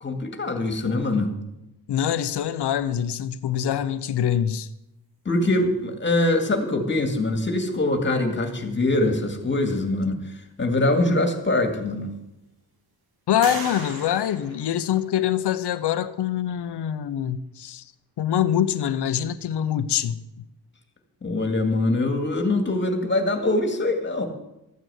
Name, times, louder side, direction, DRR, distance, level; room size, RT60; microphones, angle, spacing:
voice 1, 0.0-1.3 5.2-12.1 21.2-24.3, left 2 dB, 30° left, 2.2 m, -23 dB
voice 2, 1.9-4.7 13.3-17.8 18.2-20.2, left 10 dB, 80° left, 0.9 m, -24 dB
sound 1, 11.2-11.3 11.8-12.5 13.4-15.4, right 3 dB, 65° right, 2.5 m, -38 dB
13.5 x 9.2 x 8.0 m
wide cardioid pair, 140°, 40 cm